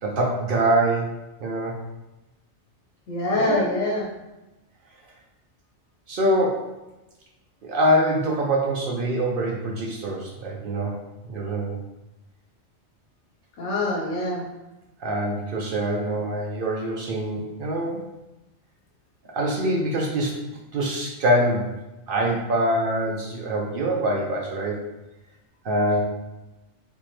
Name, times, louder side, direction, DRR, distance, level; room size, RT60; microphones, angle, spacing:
voice 1, 0.0-1.7 3.3-3.6 6.1-6.7 7.6-11.0 11.3-11.8 15.0-18.0 19.3-20.3 20.7-21.7 22.1-24.8 25.6-26.0, right 1 dB, 60° right, -1 dB, 0.6 m, -24 dB
voice 2, 3.1-4.1 13.6-14.4, left 2 dB, 80° left, -3 dB, 1.2 m, -25 dB
3.5 x 2.9 x 3.0 m, 1.0 s
omnidirectional pair, 1.2 m